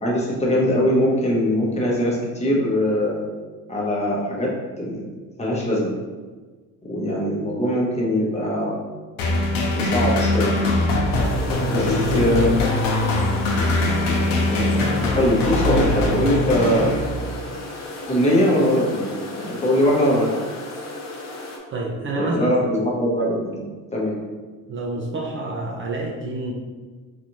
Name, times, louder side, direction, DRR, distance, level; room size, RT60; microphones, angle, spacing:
voice 1, 0.0-3.2 3.7-4.5 4.8-5.0 5.4-5.9 6.8-8.7 9.7-10.5 11.6-12.6 14.4-16.9 18.1-20.3 22.2-23.6 23.9-24.2, equal, 20° left, -3 dB, 0.9 m, -21 dB
sound 1, 9.2-17.5, left 1 dB, 85° left, 0.8 m, -22 dB
sound 2, 11.1-21.6, left 2 dB, 50° left, 0.8 m, -35 dB
voice 2, 21.7-22.7 24.7-26.5, right 2 dB, 35° right, -2 dB, 0.5 m, -28 dB
4.0 x 2.5 x 3.0 m, 1.4 s
cardioid pair, 110°, 35 cm